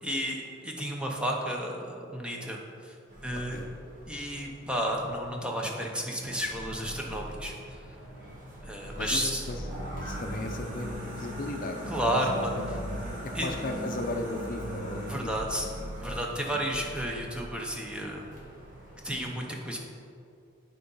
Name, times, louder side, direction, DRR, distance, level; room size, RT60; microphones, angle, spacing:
voice 1, 0.0-3.0 3.2-3.6 4.1-7.8 8.6-9.4 11.9-12.5 13.1-13.5 15.1-15.7 16.0-18.3 19.0-19.8, equal, 5° right, -1 dB, 0.6 m, -32 dB
sound 1, 3.1-5.4 6.2-19.3, right 1 dB, 45° right, 1.6 m, -40 dB
voice 2, 8.9-9.6 9.9-15.7 16.5-16.8, left 2 dB, 45° left, 3 dB, 0.5 m, -37 dB
9.2 x 3.9 x 5.4 m, 2.6 s
head